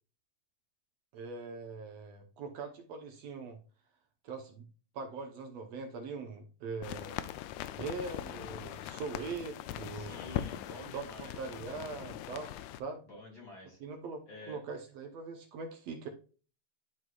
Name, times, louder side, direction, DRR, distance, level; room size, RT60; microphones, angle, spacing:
voice 1, 1.1-3.6 4.2-4.7 4.9-7.1 7.7-10.2 10.9-12.5 12.8-13.0 13.8-16.1, right 4 dB, 70° right, 4 dB, 2.0 m, -42 dB
sound 1, 6.8-12.8, left 12 dB, 80° left, 1.9 m, -41 dB
voice 2, 9.9-12.0 13.1-13.8 14.3-14.6, left 1 dB, 35° left, -1 dB, 2.5 m, -49 dB
11.5 x 4.3 x 2.4 m, 0.37 s
omnidirectional pair, 3.4 m